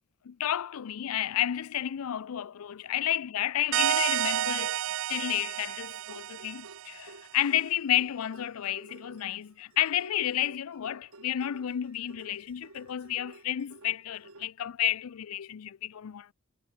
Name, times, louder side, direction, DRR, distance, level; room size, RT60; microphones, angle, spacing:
voice 1, 0.2-4.8 5.1-16.3, left 12 dB, 80° left, 0.4 m, -31 dB
sound 1, 3.7-7.1, right 12 dB, 65° right, 0.4 m, -30 dB
sound 2, 5.9-14.5, right 2 dB, 85° right, 6.1 m, -54 dB
head